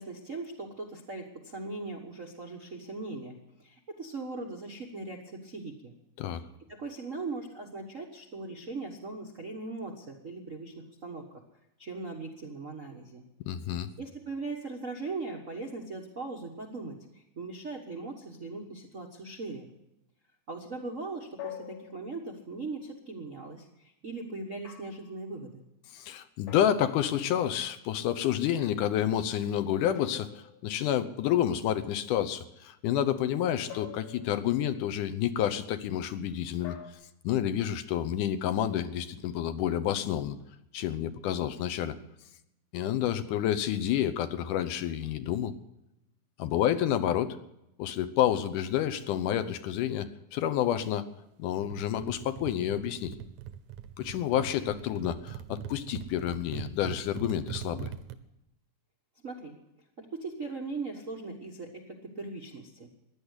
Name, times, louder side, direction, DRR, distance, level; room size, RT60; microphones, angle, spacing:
voice 1, 0.0-5.9 6.7-11.4 11.8-13.2 14.0-19.7 20.5-25.6 59.2-59.6 60.0-62.9, right 3 dB, 60° right, 1 dB, 0.8 m, -39 dB
voice 2, 13.5-13.9 25.9-36.8 37.2-40.4 40.7-42.0 42.7-45.5 46.4-47.4 47.8-51.1 51.4-53.1 54.0-57.9, left 10 dB, 80° left, 10 dB, 2.4 m, -29 dB
sound 1, 21.4-22.5 24.6-25.1 26.5-27.4 30.0-31.1 33.7-34.6 36.6-36.9, left 10 dB, 60° left, 2.3 m, -46 dB
sound 2, 51.6-58.2, right 10 dB, 75° right, 2.2 m, -42 dB
15.0 x 10.5 x 8.1 m, 0.87 s
omnidirectional pair, 3.6 m